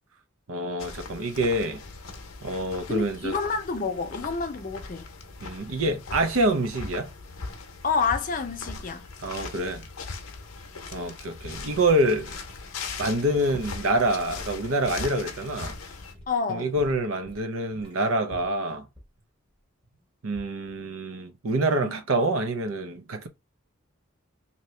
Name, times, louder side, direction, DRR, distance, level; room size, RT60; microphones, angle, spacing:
voice 1, 0.5-1.8 2.4-3.4 5.4-7.1 9.2-9.8 10.9-12.4 13.0-15.7 16.5-18.9 20.2-23.3, right 1 dB, 75° right, 0.6 m, -26 dB
sound 1, 0.8-16.1, left 4 dB, 85° left, 0.7 m, -39 dB
voice 2, 2.9-5.1 7.8-9.1 16.3-16.7 21.8-22.0, left 5 dB, 40° left, 0.5 m, -28 dB
sound 2, 11.7-12.7 12.9-14.4 15.0-15.1 15.6-16.4 16.7-20.0 20.3-20.8 21.0-21.1, equal, 25° right, 1.1 m, -48 dB
2.8 x 2.8 x 3.2 m
head